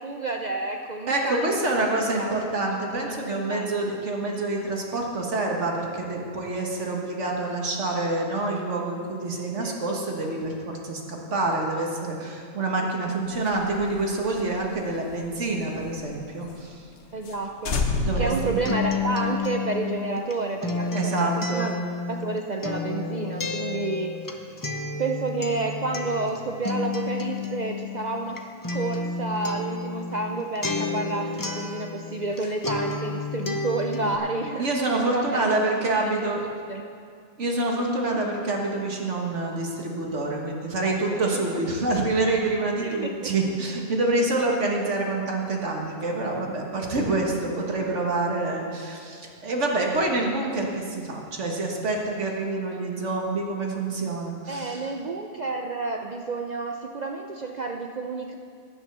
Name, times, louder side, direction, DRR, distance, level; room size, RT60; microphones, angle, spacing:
voice 1, 0.0-1.7 2.1-2.5 2.9-3.7 9.6-9.7 17.1-21.7 22.1-24.2 25.0-28.4 28.7-34.7 35.1-35.7 36.0-36.8 37.8-38.2 40.8-41.7 42.8-43.3 47.0-47.4 54.5-58.4, right 3 dB, 75° right, 2 dB, 0.4 m, -30 dB
voice 2, 1.1-16.8 18.0-18.6 20.9-21.7 34.0-34.1 34.6-36.4 37.4-54.8, right 2 dB, 50° right, 0 dB, 1.8 m, -27 dB
sound 1, 13.3-16.1 16.5-16.6 16.9-17.0 17.2-17.4 17.6-19.3, left 2 dB, 55° left, 1.1 m, -30 dB
Acoustic guitar, 18.2-32.4 32.6-34.2, left 4 dB, 30° left, 0.4 m, -31 dB
10.5 x 9.0 x 6.7 m, 2.2 s
omnidirectional pair, 1.6 m